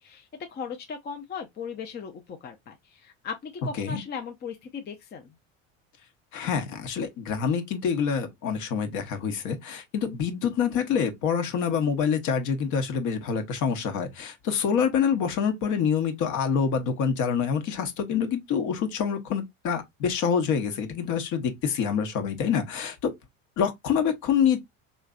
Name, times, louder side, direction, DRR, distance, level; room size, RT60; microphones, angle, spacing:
voice 1, 0.0-5.3, left 6 dB, 25° left, 0.6 m, -38 dB
voice 2, 6.3-23.1 23.6-24.6, left 7 dB, 55° left, 1.1 m, -26 dB
3.9 x 3.1 x 2.3 m
hypercardioid pair, 80°, 37 cm